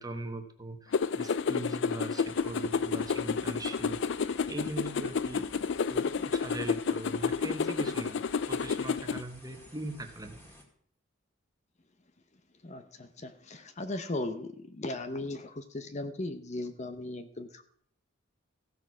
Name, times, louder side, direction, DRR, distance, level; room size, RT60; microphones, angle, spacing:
voice 1, 0.0-4.0 4.5-5.5 5.9-8.2 8.5-10.5, right 1 dB, 20° right, 6 dB, 1.3 m, -40 dB
sound 1, 0.9-9.2, left 5 dB, 60° left, 0.4 m, -30 dB
sound 2, 2.2-10.6, equal, 10° left, 2.3 m, -54 dB
voice 2, 12.6-17.6, left 2 dB, 35° left, 9 dB, 0.8 m, -37 dB
15.5 x 6.9 x 6.0 m, 0.64 s
head